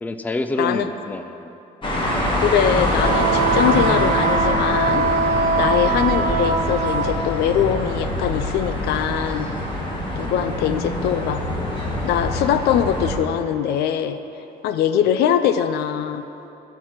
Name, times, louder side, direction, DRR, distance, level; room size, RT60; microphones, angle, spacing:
voice 1, 0.0-1.5 5.7-6.0 9.9-10.5, left 2 dB, 10° left, 8 dB, 0.4 m, -29 dB
sound 1, 1.8-13.2, left 1 dB, 30° left, 1.8 m, -24 dB
voice 2, 2.4-5.1 5.5-9.5 10.2-11.4 12.0-14.2 14.6-16.2, left 9 dB, 75° left, 10 dB, 0.5 m, -22 dB
Wind instrument woodwind instrument, 3.0-7.2, right 5 dB, 55° right, 0.7 m, -22 dB
13.5 x 4.7 x 5.7 m, 2.9 s
cardioid pair, 110°, 17 cm